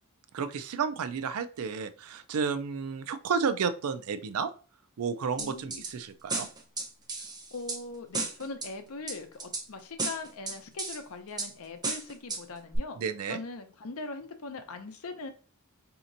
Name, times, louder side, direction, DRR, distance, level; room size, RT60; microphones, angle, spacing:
voice 1, 0.3-4.5 5.0-6.5 13.0-13.4, right 6 dB, 80° right, 11 dB, 0.4 m, -32 dB
voice 2, 5.4-5.8 7.5-13.0 13.3-15.3, left 3 dB, 75° left, 7 dB, 0.6 m, -41 dB
sound 1, 5.4-5.9 6.3-7.8 8.1-8.7 9.1-9.6 10.0-11.0 11.4-11.5 11.8-12.4 12.7-12.8, right 3 dB, 20° right, 0.6 m, -33 dB
5.0 x 2.8 x 2.5 m, 0.39 s
head